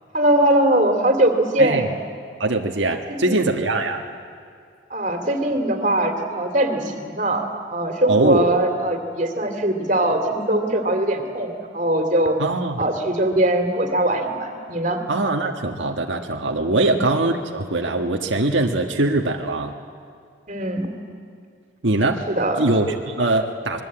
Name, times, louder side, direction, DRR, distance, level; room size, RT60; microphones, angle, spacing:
voice 1, 0.1-1.9 3.2-3.4 4.9-12.4 12.8-15.0 16.7-16.9 20.5-20.9 22.3-22.6, right 1 dB, 40° right, 5 dB, 2.8 m, -21 dB
voice 2, 2.4-4.0 8.1-8.4 12.4-12.8 15.1-19.7 21.8-22.2 22.6-23.8, right 2 dB, 85° right, 2 dB, 1.4 m, -22 dB
26.0 x 21.5 x 8.8 m, 2.2 s
head